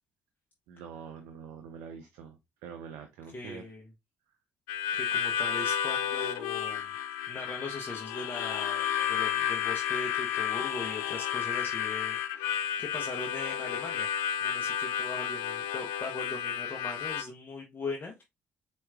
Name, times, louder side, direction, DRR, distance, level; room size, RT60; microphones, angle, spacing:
voice 1, 0.7-2.4 2.6-3.6, right 7 dB, 75° right, 0.5 m, -45 dB
voice 2, 3.3-3.9 4.9-7.0 7.3-14.1 14.4-18.1, left 2 dB, 30° left, 0.8 m, -40 dB
Harmonica, 4.7-17.2, left 9 dB, 75° left, 0.3 m, -32 dB
4.4 x 3.0 x 2.4 m
hypercardioid pair, 45°, 6 cm